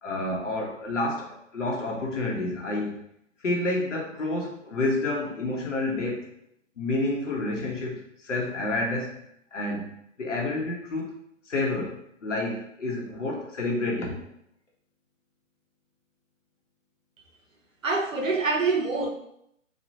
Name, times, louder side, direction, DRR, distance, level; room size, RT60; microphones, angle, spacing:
voice 1, 0.0-3.0 3.4-6.3 6.8-9.2 9.5-11.1 11.5-14.3, left 2 dB, 65° left, -1 dB, 0.9 m, -29 dB
voice 2, 17.8-19.1, right 3 dB, 75° right, 2 dB, 0.8 m, -25 dB
3.1 x 2.3 x 2.7 m, 0.75 s
figure-of-eight pair, 130°, 40 cm